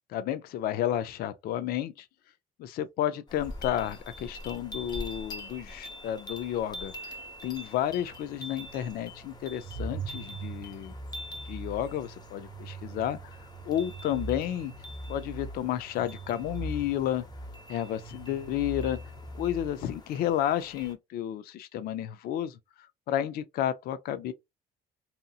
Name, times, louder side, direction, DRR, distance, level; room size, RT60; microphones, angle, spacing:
voice 1, 0.1-2.1 2.6-7.1 7.4-10.9 11.5-13.4 13.6-14.7 15.1-17.2 17.7-19.0 19.3-22.6 23.1-24.3, left 11 dB, 65° left, 0.4 m, -31 dB
sound 1, 3.3-20.9, left 1 dB, 25° left, 0.9 m, -45 dB
sound 2, 7.9-20.0, right 2 dB, 45° right, 0.5 m, -42 dB
2.8 x 2.6 x 2.3 m
cardioid pair, 110°, 17 cm